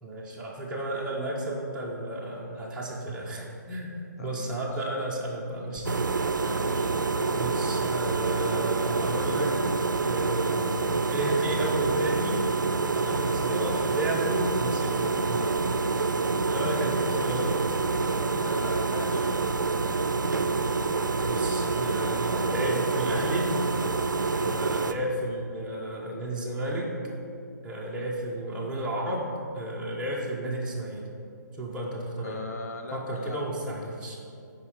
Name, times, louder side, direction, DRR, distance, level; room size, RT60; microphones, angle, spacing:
voice 1, 0.0-6.0 7.3-9.6 10.0-10.7 11.1-12.5 12.9-15.5 16.5-17.6 21.2-23.5 24.3-26.9 27.6-31.0 31.6-32.4 32.9-34.2, right 1 dB, 10° right, -4 dB, 0.8 m, -32 dB
voice 2, 4.2-4.7 6.4-6.9 18.4-19.3 32.2-33.4, left 3 dB, 50° left, 4 dB, 0.7 m, -39 dB
sound 1, 5.8-24.9, right 4 dB, 85° right, 0.4 m, -27 dB
5.5 x 4.6 x 4.9 m, 2.5 s
figure-of-eight pair, 145°, 10 cm